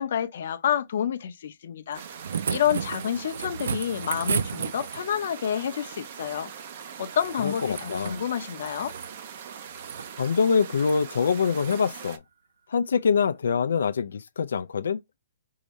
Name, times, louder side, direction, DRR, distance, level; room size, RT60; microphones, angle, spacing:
voice 1, 0.0-2.0 2.5-6.5 7.0-8.9, left 9 dB, 45° left, 0.7 m, -29 dB
sound 1, 1.9-12.2, right 7 dB, 35° right, 0.6 m, -42 dB
sound 2, 1.9-5.2 7.2-8.2 8.5-9.2 9.7-10.1 10.8-11.0 11.6-11.8 13.2-13.3, right 6 dB, 80° right, 0.3 m, -33 dB
voice 2, 7.4-8.2 10.2-12.2 12.7-15.0, left 6 dB, 80° left, 0.4 m, -24 dB
4.7 x 2.7 x 3.1 m
hypercardioid pair, 180°, 0 cm